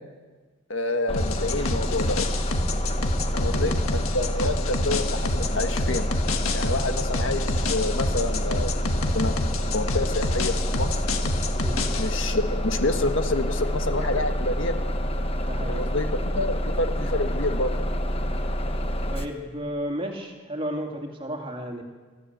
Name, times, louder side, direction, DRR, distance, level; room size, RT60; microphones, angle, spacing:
voice 1, 0.7-2.3 3.3-6.1 6.5-9.4 9.7-11.0 12.0-14.7 15.7-17.7, left 2 dB, 65° left, 7 dB, 1.6 m, -28 dB
sound 1, 1.1-12.1, left 2 dB, 85° left, 1.7 m, -29 dB
Bus, 1.1-19.3, equal, 25° left, 1.1 m, -27 dB
voice 2, 15.5-15.8 19.1-21.8, equal, 25° right, 2 dB, 2.7 m, -33 dB
24.5 x 14.5 x 8.1 m, 1.4 s
head